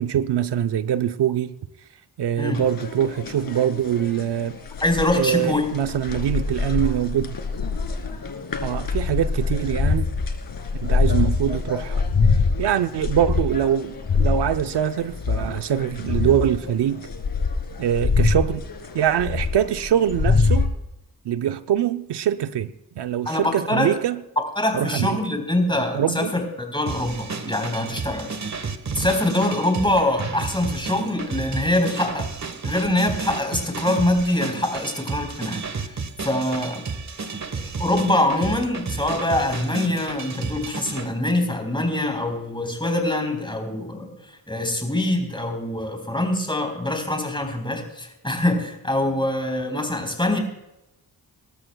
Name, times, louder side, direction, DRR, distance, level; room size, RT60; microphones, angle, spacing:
voice 1, 0.0-1.5 2.2-4.6 5.1-7.4 8.6-10.1 10.8-12.0 12.6-17.1 17.8-18.6 18.9-20.7 21.2-22.7 23.0-24.2 24.7-25.2 25.9-26.3, right 10 dB, 80° right, 10 dB, 0.7 m, -23 dB
sound 1, 2.5-20.7, left 4 dB, 60° left, 2.4 m, -25 dB
voice 2, 4.8-5.7 23.3-23.9 24.4-28.3 29.0-32.3 32.6-35.7 36.2-36.9 37.6-44.1 44.5-50.4, left 1 dB, 10° left, 4 dB, 4.0 m, -24 dB
sound 2, 26.9-41.1, right 4 dB, 40° right, 1.3 m, -32 dB
27.0 x 12.5 x 2.3 m, 0.90 s
cardioid pair, 75°, 40 cm